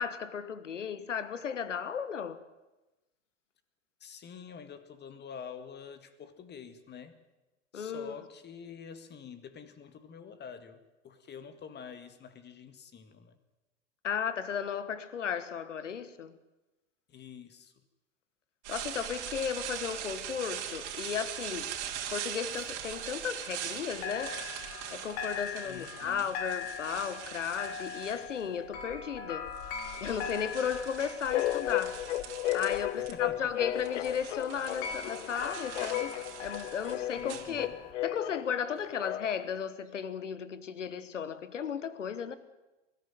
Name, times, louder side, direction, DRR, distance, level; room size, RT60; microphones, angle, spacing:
voice 1, 0.0-2.4 7.7-8.1 14.0-16.4 18.7-21.7 22.1-24.4 24.9-29.5 30.0-32.0 32.5-36.1 36.4-37.7 38.0-42.4, left 7 dB, 90° left, 1.4 m, -35 dB
voice 2, 4.0-7.2 7.7-13.4 17.1-17.8 25.6-26.3 33.0-33.5 37.2-37.8, left 7 dB, 30° left, 2.0 m, -47 dB
sound 1, 18.6-28.6 29.3-33.1 33.4-38.0, right 10 dB, 65° right, 2.9 m, -42 dB
sound 2, 21.8-23.8 24.0-37.9, left 6 dB, 55° left, 3.2 m, -42 dB
sound 3, 31.3-39.5, left 15 dB, 75° left, 0.7 m, -34 dB
21.0 x 14.0 x 9.2 m
hypercardioid pair, 100°, 36 cm